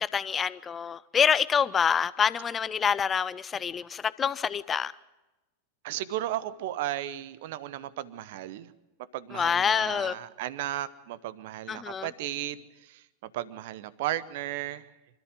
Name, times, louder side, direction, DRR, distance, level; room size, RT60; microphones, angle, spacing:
voice 1, 0.0-4.9 9.3-10.1 11.7-12.1, left 7 dB, 20° left, 0.6 m, -26 dB
voice 2, 5.8-8.7 9.1-13.0 13.3-14.8, right 13 dB, 50° right, 0.9 m, -35 dB
25.5 x 13.5 x 7.7 m
figure-of-eight pair, 90°, 0 cm